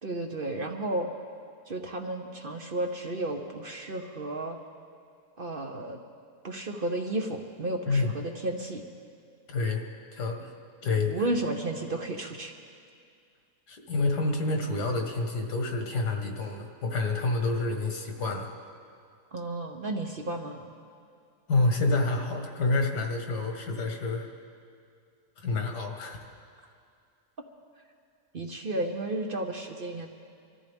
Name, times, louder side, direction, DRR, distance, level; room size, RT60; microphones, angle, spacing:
voice 1, 0.0-1.1 1.7-4.6 5.4-6.0 6.4-8.8 11.1-12.5 19.3-20.7 28.3-30.1, right 2 dB, 40° right, 3 dB, 0.9 m, -33 dB
voice 2, 9.5-9.8 10.1-10.5 10.8-11.1 13.7-18.5 21.5-24.3 25.4-26.2, left 3 dB, 90° left, 3 dB, 2.1 m, -28 dB
25.0 x 13.5 x 3.5 m, 2.3 s
omnidirectional pair, 1.7 m